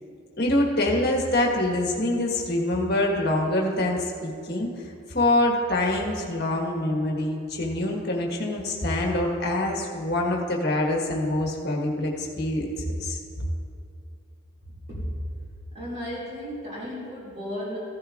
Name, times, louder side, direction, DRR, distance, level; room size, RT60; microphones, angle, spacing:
voice 1, 0.4-4.7 5.1-12.7 13.0-13.2, left 1 dB, 50° left, -1 dB, 1.4 m, -25 dB
voice 2, 14.9-15.2 15.7-17.8, equal, 35° right, -9 dB, 2.4 m, -34 dB
15.0 x 11.5 x 2.5 m, 2.5 s
head